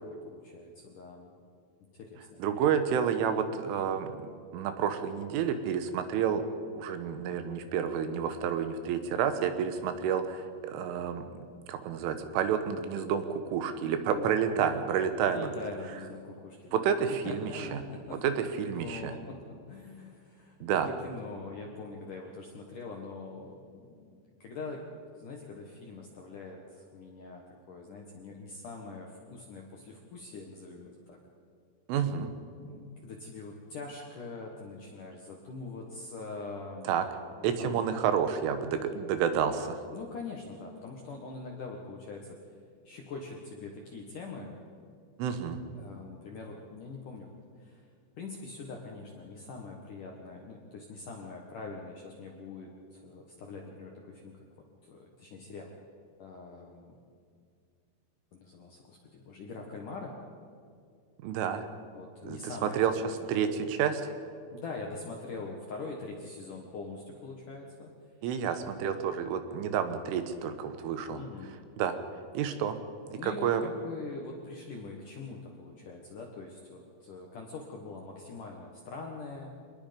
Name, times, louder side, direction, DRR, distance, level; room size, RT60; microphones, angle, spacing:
voice 1, 0.0-1.3 1.9-2.4 14.1-14.9 15.3-16.9 17.2-18.2 18.7-19.4 19.7-24.8 25.2-31.2 32.6-36.9 37.4-37.9 39.9-42.4 42.9-44.5 45.7-47.8 48.2-54.3 54.8-55.7 56.2-57.0 58.3-60.2 61.9-63.0 64.5-67.9 71.1-71.5 73.1-79.5, left 3 dB, 65° left, 0 dB, 2.1 m, -43 dB
voice 2, 2.4-4.1 4.5-6.5 6.7-11.4 11.7-15.5 16.7-17.8 18.2-19.1 20.6-20.9 31.9-32.3 36.9-37.0 37.4-39.8 45.2-45.6 61.2-61.6 62.3-64.1 68.2-71.2 71.8-72.0 72.3-72.8 73.2-73.6, right 8 dB, 75° right, 9 dB, 3.5 m, -30 dB
25.5 x 20.0 x 5.3 m, 2.3 s
omnidirectional pair, 5.9 m